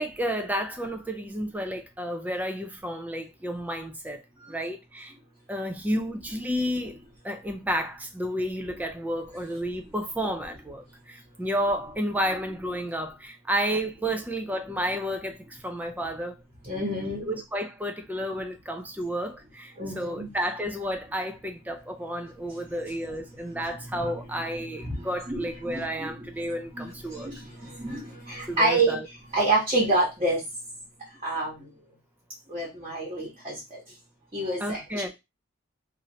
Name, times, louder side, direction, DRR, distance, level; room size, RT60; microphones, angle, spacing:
voice 1, 0.0-4.2 4.5-5.1 5.5-16.4 17.1-27.3 28.5-29.1 34.6-35.1, equal, 10° right, 0.3 m, -31 dB
voice 2, 16.6-17.4 19.8-20.3 22.5-30.4 31.2-31.6 32.5-33.8 34.3-35.1, right 2 dB, 25° right, 1.1 m, -29 dB
3.1 x 2.5 x 2.7 m
head